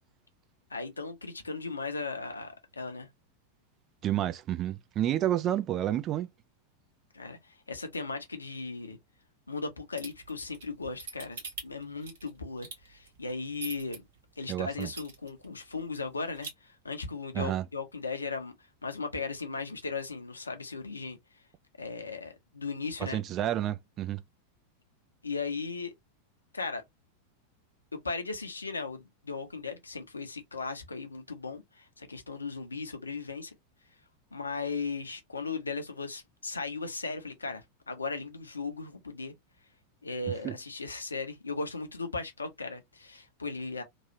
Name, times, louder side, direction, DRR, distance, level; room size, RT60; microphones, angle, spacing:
voice 1, 0.7-3.1 7.1-9.0 9.5-14.0 14.4-18.5 18.8-21.2 21.8-23.2 25.2-25.9 26.5-26.8 27.9-33.5 34.3-39.3 40.0-43.8, left 4 dB, 80° left, 0.7 m, -37 dB
voice 2, 4.0-6.3 14.5-14.9 17.3-17.7 23.0-24.2 40.4-40.5, right 12 dB, 30° right, 0.4 m, -30 dB
sound 1, 10.0-14.0 14.4-14.5 14.8-15.4 15.8-15.9 16.1-16.5, right 4 dB, 60° right, 1.3 m, -42 dB
3.0 x 2.3 x 2.8 m
figure-of-eight pair, 90°, 0 cm